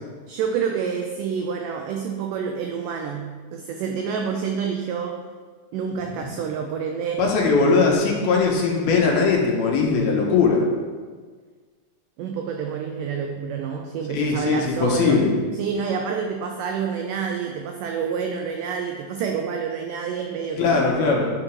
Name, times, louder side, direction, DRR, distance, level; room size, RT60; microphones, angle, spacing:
voice 1, 0.3-5.2 5.7-7.3 12.2-20.9, right 6 dB, 85° right, 3 dB, 1.8 m, -28 dB
voice 2, 7.2-10.6 14.1-15.3 20.6-21.3, left 4 dB, 90° left, 0 dB, 2.9 m, -20 dB
9.7 x 3.8 x 4.5 m, 1.5 s
omnidirectional pair, 4.3 m